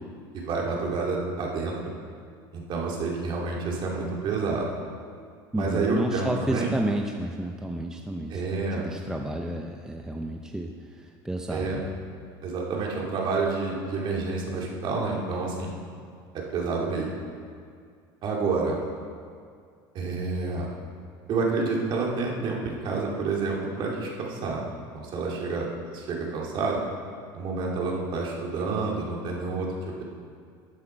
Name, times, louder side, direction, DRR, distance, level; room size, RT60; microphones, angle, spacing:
voice 1, 0.3-1.9 2.5-4.7 5.5-6.7 8.3-8.8 11.5-11.8 12.4-15.7 16.3-17.1 18.2-18.8 19.9-20.7 21.3-24.6 24.9-26.8 27.3-30.0, right 4 dB, 50° right, -2 dB, 2.6 m, -29 dB
voice 2, 5.5-8.4 8.7-11.9, right 1 dB, 5° right, 2 dB, 0.6 m, -31 dB
13.0 x 8.3 x 4.5 m, 2.2 s
supercardioid pair, 125°, 11 cm